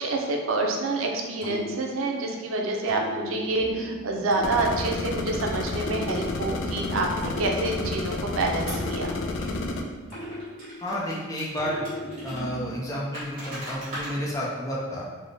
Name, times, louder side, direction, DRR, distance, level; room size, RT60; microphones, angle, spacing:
voice 1, 0.0-9.2, right 2 dB, 90° right, 1 dB, 0.5 m, -27 dB
sound 1, 1.4-2.4 2.9-5.3 5.8-8.2 8.7-11.1 11.6-13.0, equal, 85° left, 1.2 m, -37 dB
sound 2, 4.4-9.8, left 3 dB, 70° left, 0.3 m, -31 dB
sound 3, 8.7-9.0 9.4-9.5 10.1-12.4 13.1-14.1, right 1 dB, 40° right, 1.5 m, -39 dB
voice 2, 10.8-11.8 12.2-15.1, equal, 15° left, -5 dB, 0.5 m, -31 dB
4.0 x 2.1 x 3.2 m, 1.4 s
head